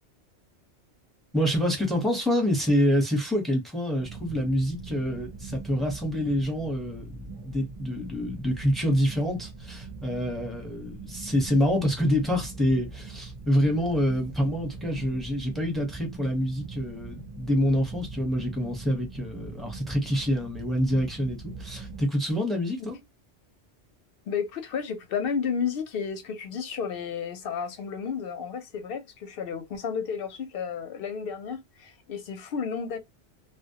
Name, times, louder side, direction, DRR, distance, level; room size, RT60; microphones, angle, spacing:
voice 1, 1.3-23.0, equal, ahead, 0.6 m, -26 dB
sound 1, 4.0-22.0, right 3 dB, 40° right, 0.5 m, -41 dB
voice 2, 24.3-33.0, left 6 dB, 60° left, 0.7 m, -32 dB
2.1 x 2.1 x 2.7 m
omnidirectional pair, 1.2 m